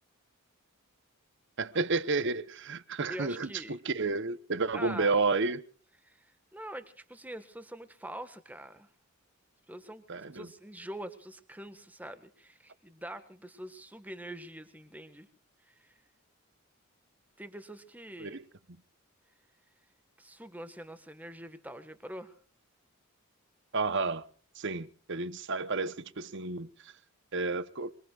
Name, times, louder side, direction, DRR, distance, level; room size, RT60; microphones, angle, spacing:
voice 1, 1.6-5.6 10.1-10.5 18.2-18.4 23.7-24.2 24.6-26.7 27.3-27.9, right 3 dB, 55° right, 0.9 m, -31 dB
voice 2, 3.1-3.8 4.7-5.2 6.0-8.9 9.7-15.3 15.7-15.9 17.4-18.4 20.2-22.3, right 1 dB, 5° right, 1.5 m, -44 dB
26.5 x 22.0 x 2.4 m
head